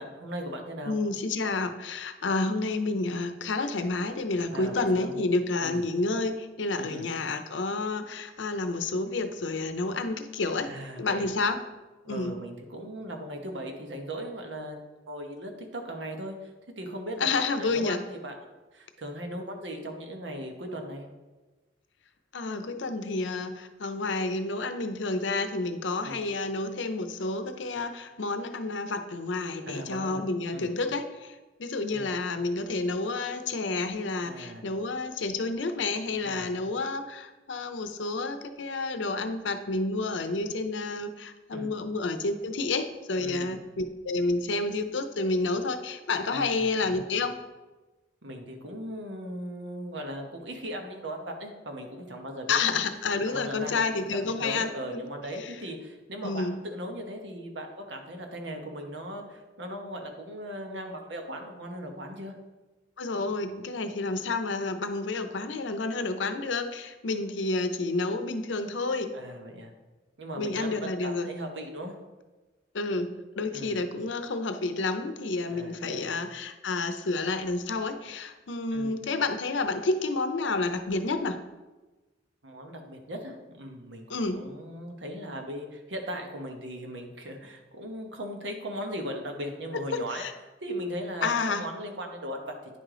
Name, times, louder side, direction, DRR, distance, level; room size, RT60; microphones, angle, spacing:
voice 1, 0.0-1.0 4.5-5.2 5.6-5.9 6.8-7.1 10.6-11.3 12.0-14.8 15.1-16.5 16.8-18.4 18.7-21.1 26.0-26.2 29.6-30.2 30.5-30.7 31.9-32.2 34.2-34.6 36.2-36.6 41.5-41.7 43.2-43.6 46.3-46.7 48.2-52.8 53.3-53.8 54.1-62.3 69.1-69.7 70.2-72.0 73.5-73.9 75.5-76.1 78.7-79.0 82.4-84.1 84.3-90.3 90.6-92.8, equal, 80° right, 3 dB, 1.1 m, -38 dB
voice 2, 0.9-10.7 11.0-11.6 12.1-12.4 17.2-18.0 22.3-47.4 52.5-55.1 55.4-55.5 56.2-56.6 63.0-69.2 70.4-71.3 72.7-81.4 84.1-84.5 89.7-90.3 91.2-91.7, left 3 dB, 85° left, 8 dB, 0.6 m, -30 dB
9.5 x 3.8 x 4.9 m, 1.2 s
head